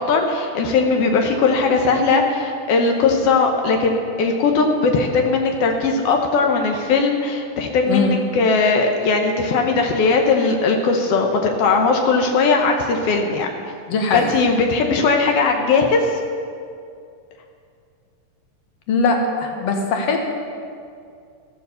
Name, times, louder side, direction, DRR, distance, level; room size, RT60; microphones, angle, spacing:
voice 1, 0.0-13.5 14.1-16.1, left 4 dB, 80° left, 2 dB, 1.3 m, -19 dB
voice 2, 7.9-8.2 13.9-14.3 18.9-20.3, left 3 dB, 60° left, 3 dB, 1.7 m, -20 dB
14.5 x 7.1 x 6.8 m, 2.3 s
omnidirectional pair, 4.0 m